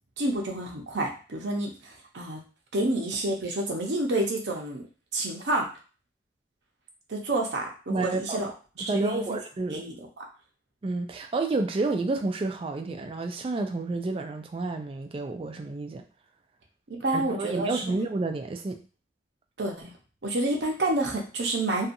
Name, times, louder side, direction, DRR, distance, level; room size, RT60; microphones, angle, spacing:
voice 1, 0.2-2.4 2.7-4.8 5.1-5.7 7.1-8.5 8.8-9.2 9.7-10.2 16.9-17.8 19.6-19.9 20.2-21.9, right 2 dB, 85° right, 0 dB, 0.7 m, -29 dB
voice 2, 7.9-8.5 8.9-9.8 10.8-16.0 17.1-18.8, right 3 dB, 30° right, 6 dB, 0.3 m, -30 dB
2.7 x 2.3 x 2.6 m, 0.35 s
head